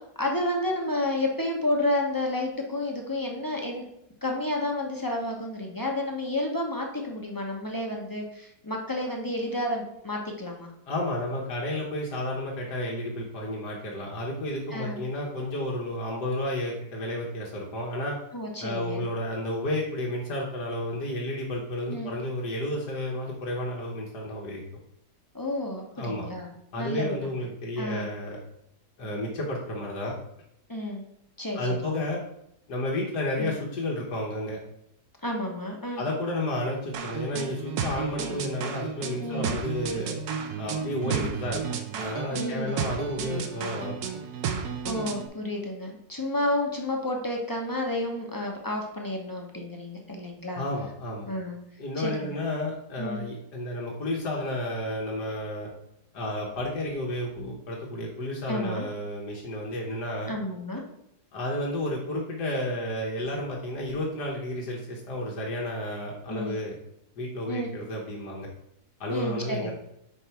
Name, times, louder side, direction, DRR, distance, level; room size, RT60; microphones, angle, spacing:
voice 1, 0.2-3.8 4.2-10.7 14.7-15.0 18.3-19.1 21.9-22.1 25.3-26.5 26.8-27.3 27.8-28.1 30.7-31.0 31.4-32.0 33.4-33.5 35.2-36.0 39.2-39.5 41.0-41.3 42.3-42.8 44.8-50.6 51.3-51.6 52.0-52.4 53.0-53.2 58.5-58.8 60.3-60.8 66.3-66.6 67.5-67.7 69.1-69.7, left 1 dB, 20° left, 0 dB, 0.5 m, -31 dB
voice 2, 10.9-18.2 18.6-24.6 26.0-26.3 26.7-28.4 29.0-30.1 31.5-32.2 32.7-34.6 36.0-40.2 40.6-41.6 42.0-44.0 50.6-51.3 51.8-55.7 56.1-60.4 61.3-66.8 67.2-68.5 69.0-69.7, left 1 dB, 90° left, -3 dB, 1.7 m, -31 dB
sound 1, 36.9-45.3, right 7 dB, 75° right, 1.1 m, -33 dB
4.5 x 4.5 x 5.6 m, 0.79 s
omnidirectional pair, 1.7 m